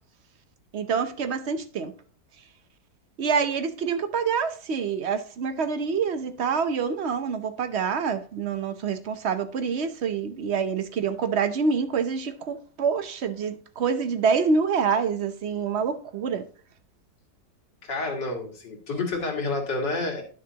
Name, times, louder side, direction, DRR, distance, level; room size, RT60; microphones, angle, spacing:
voice 1, 0.7-1.9 3.2-16.4, right 5 dB, 55° right, 0.8 m, -26 dB
voice 2, 17.8-20.2, left 3 dB, 85° left, 2.8 m, -29 dB
10.5 x 6.5 x 2.8 m
omnidirectional pair, 1.9 m